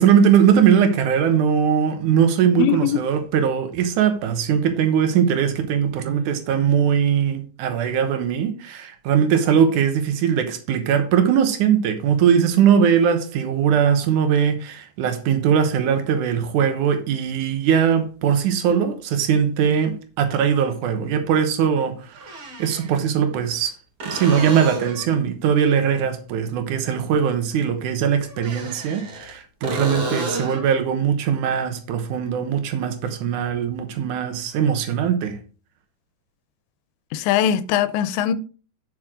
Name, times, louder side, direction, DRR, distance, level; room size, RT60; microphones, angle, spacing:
voice 1, 0.0-23.7 24.0-35.4, right 8 dB, 85° right, 1.7 m, -20 dB
voice 2, 2.6-3.0 37.1-38.3, left 10 dB, 90° left, 2.9 m, -21 dB
sound 1, 18.7-18.8 20.8-20.9 22.2-22.9 24.0-25.1 28.3-29.3 29.6-30.7 34.3-34.4, right 1 dB, 40° right, 2.0 m, -30 dB
9.6 x 6.1 x 3.7 m
omnidirectional pair, 5.1 m